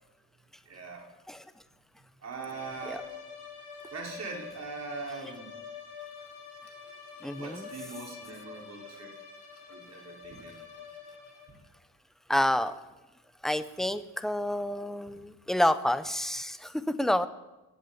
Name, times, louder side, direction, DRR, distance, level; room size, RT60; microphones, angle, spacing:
voice 1, 0.6-1.1 2.2-3.1 3.9-5.5 7.4-9.1 9.7-10.6, right 4 dB, 40° right, -1 dB, 4.7 m, -41 dB
sound 1, 2.5-11.7, left 5 dB, 80° left, 5.0 m, -46 dB
voice 2, 7.2-7.7 12.3-12.7 13.4-17.3, left 1 dB, ahead, 12 dB, 0.7 m, -28 dB
21.0 x 7.4 x 8.6 m, 1.1 s
cardioid pair, 135°, 40 cm